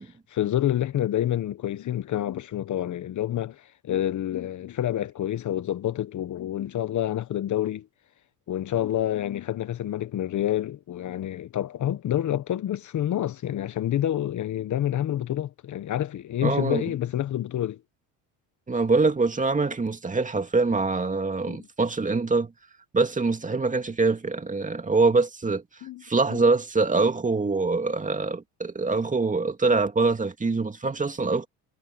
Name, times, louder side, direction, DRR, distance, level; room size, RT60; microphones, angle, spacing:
voice 1, 0.3-7.9 8.5-17.8 21.5-21.7 25.8-26.0 26.3-26.4, left 12 dB, 45° left, 1.1 m, -28 dB
voice 2, 16.4-16.8 18.7-22.5 22.9-25.6 26.0-31.5, right 3 dB, 20° right, 2.4 m, -24 dB
supercardioid pair, 90°, 39 cm